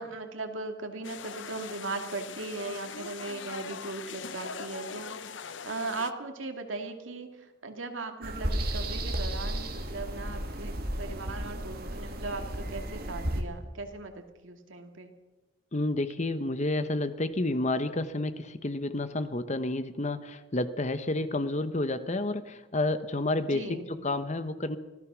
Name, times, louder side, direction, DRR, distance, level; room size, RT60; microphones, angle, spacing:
voice 1, 0.0-15.1 23.5-24.0, right 3 dB, 80° right, 5 dB, 2.4 m, -38 dB
sound 1, 1.0-6.1, left 6 dB, 65° left, 0.7 m, -41 dB
sound 2, 8.2-13.4, right 1 dB, 50° right, 2.3 m, -33 dB
voice 2, 15.7-24.8, left 2 dB, 35° left, 11 dB, 1.0 m, -30 dB
25.0 x 16.5 x 6.2 m, 1.2 s
head